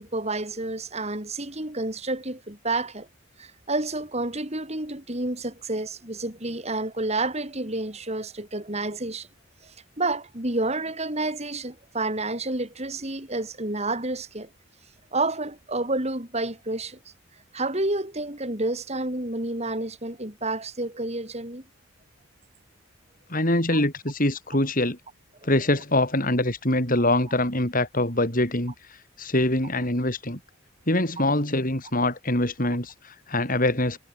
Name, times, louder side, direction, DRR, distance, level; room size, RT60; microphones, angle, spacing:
voice 1, 0.0-3.1 3.4-9.3 9.6-14.5 15.1-17.0 17.5-21.6 23.7-23.8, right 2 dB, 30° right, 4.3 m, -29 dB
voice 2, 23.3-25.0 25.4-28.7 29.2-30.4 30.9-34.0, left 1 dB, 40° left, 6.5 m, -24 dB
head